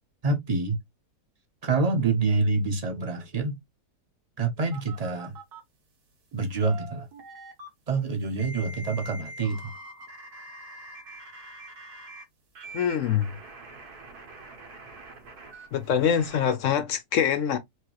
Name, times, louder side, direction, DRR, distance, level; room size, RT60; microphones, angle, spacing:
voice 1, 0.2-0.8 1.6-3.6 4.4-5.3 6.3-7.1 7.9-9.7, right 3 dB, 30° right, 0.8 m, -26 dB
sound 1, 4.7-5.6 6.3-7.7 8.4-12.2 12.5-16.5, right 2 dB, 75° right, 1.9 m, -44 dB
voice 2, 12.7-13.3 15.7-17.6, left 8 dB, 65° left, 0.8 m, -24 dB
4.7 x 2.8 x 2.9 m
omnidirectional pair, 1.7 m